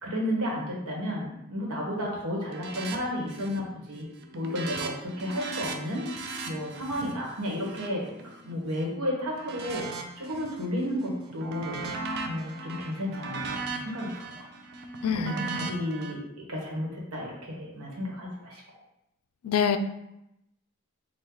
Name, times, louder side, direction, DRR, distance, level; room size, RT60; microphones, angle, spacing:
voice 1, 0.0-4.1 4.3-6.1 6.5-11.8 12.2-14.5 15.1-18.6, equal, 90° right, -2 dB, 1.2 m, -32 dB
sound 1, 2.5-3.0 3.3-3.7 4.0-8.8 9.3-10.7 11.0-16.1, right 4 dB, 50° right, 0.4 m, -38 dB
voice 2, 15.0-15.7 19.4-19.8, left 7 dB, 70° left, 9 dB, 0.3 m, -26 dB
4.5 x 2.3 x 3.8 m, 0.84 s
head